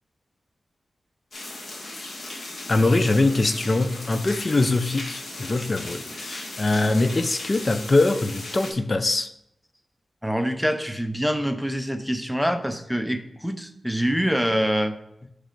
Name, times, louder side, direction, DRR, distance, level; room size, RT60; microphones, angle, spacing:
sound 1, 1.3-8.7, left 2 dB, 55° left, 1.6 m, -37 dB
voice 1, 2.7-9.3, left 2 dB, 40° left, 0.5 m, -22 dB
voice 2, 10.2-14.9, equal, ahead, 0.7 m, -25 dB
6.1 x 3.3 x 5.1 m
cardioid pair, 70°, 0 cm